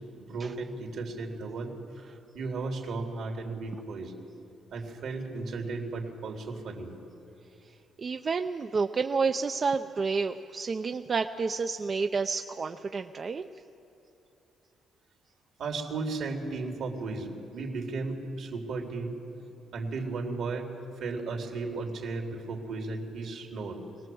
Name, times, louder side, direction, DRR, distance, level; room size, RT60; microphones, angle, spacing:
voice 1, 0.1-1.8 2.3-4.1 4.7-6.9 15.6-20.7 21.0-23.8, right 3 dB, 70° right, 2 dB, 3.2 m, -35 dB
voice 2, 8.0-13.5, right 4 dB, 40° right, 6 dB, 0.6 m, -30 dB
22.5 x 19.0 x 7.8 m, 2.9 s
cardioid pair, 90°, 0 cm